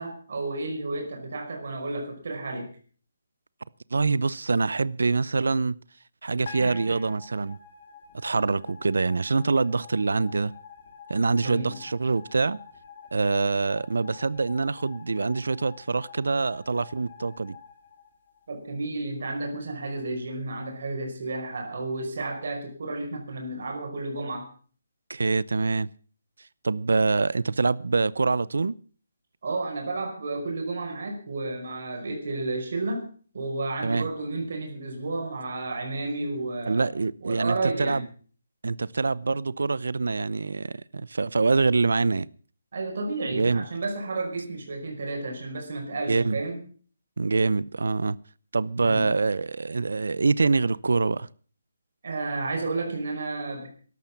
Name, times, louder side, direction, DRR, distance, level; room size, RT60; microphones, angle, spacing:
voice 1, 0.0-2.7 6.6-7.0 11.3-11.7 18.5-24.5 29.4-33.1 33.3-36.9 37.2-38.0 42.7-46.6 48.8-49.1 52.0-53.7, right 2 dB, 45° right, 5.2 m, -32 dB
voice 2, 3.9-5.8 6.2-7.6 8.2-10.5 11.1-12.6 13.1-17.6 25.1-25.9 26.6-28.8 33.8-34.1 36.7-38.0 38.6-42.3 43.3-43.6 46.1-46.4 47.2-48.2 48.5-51.3, right 4 dB, 80° right, 0.6 m, -25 dB
sound 1, 6.5-18.7, left 6 dB, 30° left, 3.1 m, -48 dB
13.0 x 12.0 x 7.1 m
hypercardioid pair, 180°, 0 cm